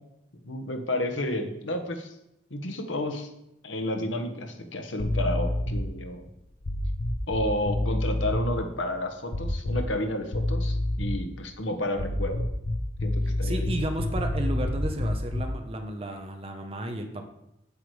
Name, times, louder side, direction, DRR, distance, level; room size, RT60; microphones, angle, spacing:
voice 1, 0.4-2.1 2.5-3.3 3.6-6.3 7.3-12.5 13.0-13.7, left 1 dB, 85° left, 5 dB, 1.3 m, -31 dB
sound 1, 5.0-6.0 6.6-8.5 9.3-10.0 10.3-11.3 11.9-15.6, left 1 dB, 70° left, 0.9 m, -28 dB
voice 2, 13.4-17.2, right 1 dB, 30° right, 4 dB, 1.0 m, -33 dB
8.5 x 8.2 x 4.9 m, 0.85 s
head